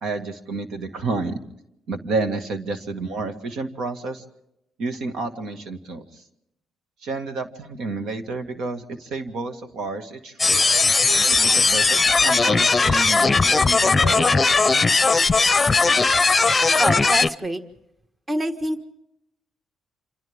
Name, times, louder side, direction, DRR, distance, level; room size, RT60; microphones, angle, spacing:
voice 1, 0.0-1.4 1.9-4.2 4.8-6.2 7.0-10.6 11.3-14.7, right 3 dB, 75° right, 7 dB, 2.0 m, -30 dB
sound 1, 10.4-17.3, left 4 dB, 25° left, 0.7 m, -18 dB
voice 2, 16.8-17.6 18.3-18.9, equal, 20° right, 7 dB, 1.6 m, -25 dB
28.0 x 27.0 x 3.6 m, 0.82 s
cardioid pair, 90°, 0 cm